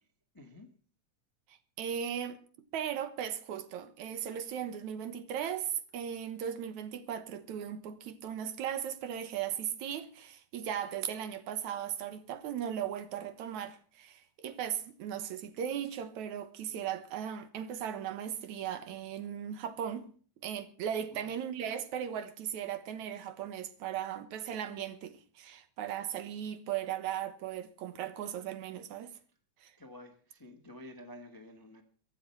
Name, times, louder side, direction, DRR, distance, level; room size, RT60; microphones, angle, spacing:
voice 1, 0.3-0.7 21.1-21.3 29.8-31.8, left 1 dB, 20° left, 0.6 m, -50 dB
voice 2, 1.5-2.4 2.7-20.1 20.4-29.1 29.6-29.7, right 9 dB, 70° right, 2.5 m, -37 dB
23.0 x 8.0 x 5.9 m
omnidirectional pair, 3.5 m